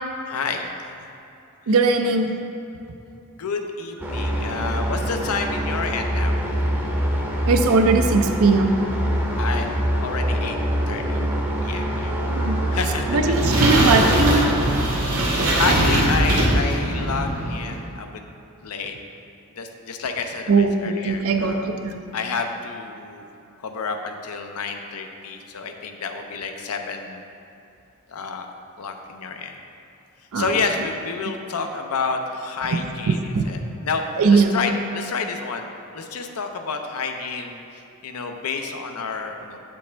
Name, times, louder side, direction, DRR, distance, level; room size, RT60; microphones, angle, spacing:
voice 1, 0.3-0.9 1.7-1.8 3.4-6.4 9.4-10.6 10.9-11.2 11.6-12.2 12.7-13.2 15.6-18.2 18.6-19.0 19.5-21.7 22.1-23.2 23.6-27.2 28.1-28.5 28.8-29.6 30.3-34.0 34.3-35.7 35.9-39.6, left 4 dB, 80° left, 5 dB, 0.5 m, -29 dB
voice 2, 1.7-2.3 7.5-8.8 12.2-12.7 13.1-14.4 20.5-22.1 30.3-30.5 33.3-33.4 34.2-34.5, right 4 dB, 70° right, 6 dB, 0.5 m, -19 dB
sound 1, 4.0-14.7, equal, 10° right, 0.6 m, -24 dB
sound 2, 12.9-17.8, right 1 dB, 90° right, 1.3 m, -21 dB
7.5 x 5.3 x 3.3 m, 2.7 s
head